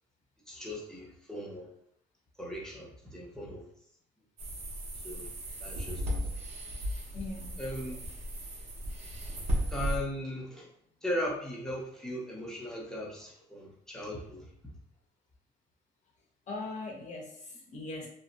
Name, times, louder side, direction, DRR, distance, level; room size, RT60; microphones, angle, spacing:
voice 1, 0.5-1.7 2.4-3.6 5.0-5.3 5.6-6.0 7.6-8.0 9.7-10.7 11.0-14.5, left 1 dB, 5° left, -4 dB, 0.7 m, -38 dB
sound 1, 4.4-10.0, equal, 40° right, 0.7 m, -35 dB
voice 2, 7.1-7.6 16.5-18.1, left 2 dB, 45° left, -1 dB, 0.8 m, -40 dB
2.6 x 2.1 x 2.5 m, 0.66 s
cardioid pair, 110°, 17 cm